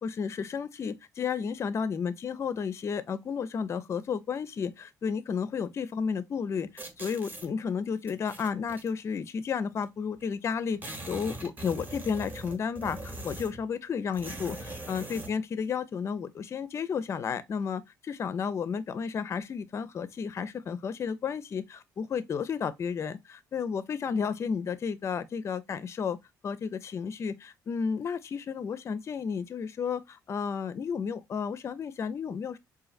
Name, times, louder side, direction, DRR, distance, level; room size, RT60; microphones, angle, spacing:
voice 1, 0.0-26.2 26.4-32.6, left 6 dB, 35° left, 0.4 m, -32 dB
sound 1, 6.8-7.5 8.1-8.9 9.8-9.9 10.2-10.3 10.5-13.7 14.1-15.4, right 1 dB, 25° right, 0.9 m, -41 dB
4.0 x 2.5 x 2.4 m
cardioid pair, 110°, 8 cm